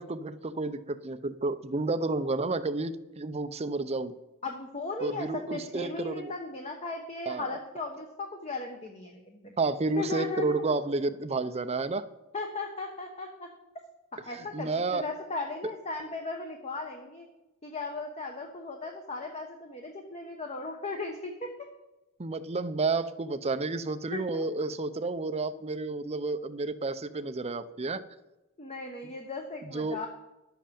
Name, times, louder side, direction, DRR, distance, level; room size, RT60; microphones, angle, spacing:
voice 1, 0.0-4.1 5.0-6.3 7.3-7.6 9.6-12.1 14.4-15.1 22.2-28.0 29.6-30.0, right 3 dB, 30° right, 11 dB, 0.6 m, -31 dB
voice 2, 4.4-9.5 10.0-10.6 12.3-13.5 14.3-17.3 17.6-21.5 24.1-24.5 28.6-30.1, left 3 dB, 30° left, 2 dB, 1.1 m, -37 dB
11.5 x 7.5 x 7.0 m, 0.98 s
head